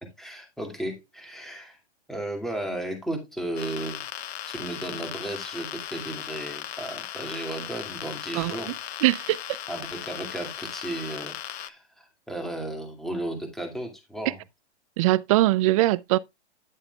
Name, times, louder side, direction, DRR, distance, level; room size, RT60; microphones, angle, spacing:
voice 1, 0.0-1.8 2.1-4.0 4.5-8.7 9.7-14.4, right 1 dB, ahead, 2.3 m, -34 dB
sound 1, 3.6-11.7, left 11 dB, 65° left, 1.0 m, -37 dB
voice 2, 9.0-9.4 15.0-16.2, right 17 dB, 30° right, 0.4 m, -21 dB
10.0 x 8.5 x 2.3 m
hypercardioid pair, 130°, 34 cm